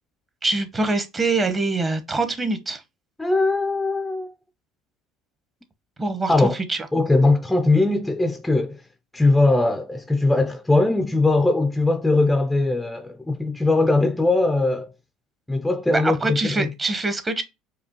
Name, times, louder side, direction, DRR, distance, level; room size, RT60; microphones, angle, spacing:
voice 1, 0.4-2.8 6.0-6.3 6.7-6.8 15.9-17.4, right 3 dB, 25° right, 0.9 m, -24 dB
voice 2, 3.2-4.3 6.3-6.6 6.9-8.8 9.1-14.9 15.5-16.7, left 2 dB, 10° left, 0.4 m, -20 dB
4.9 x 2.2 x 2.9 m
supercardioid pair, 95°, 0 cm